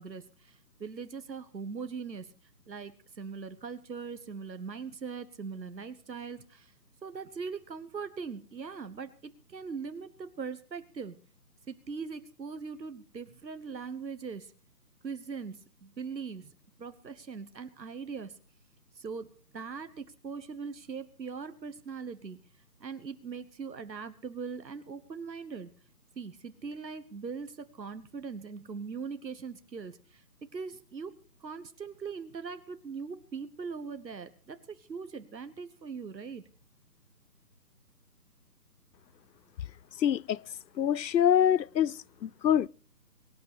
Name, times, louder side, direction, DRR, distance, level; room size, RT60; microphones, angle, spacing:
voice 1, 0.0-2.3 2.7-6.7 7.0-9.1 9.5-11.2 11.7-14.5 15.0-16.5 16.8-18.4 18.9-22.4 22.8-25.7 26.2-30.2 30.5-36.4, right 5 dB, 85° right, 1.4 m, -41 dB
voice 2, 40.0-40.4 40.8-42.7, left 9 dB, 85° left, 0.6 m, -25 dB
23.0 x 9.1 x 4.9 m
figure-of-eight pair, 165°, 50 cm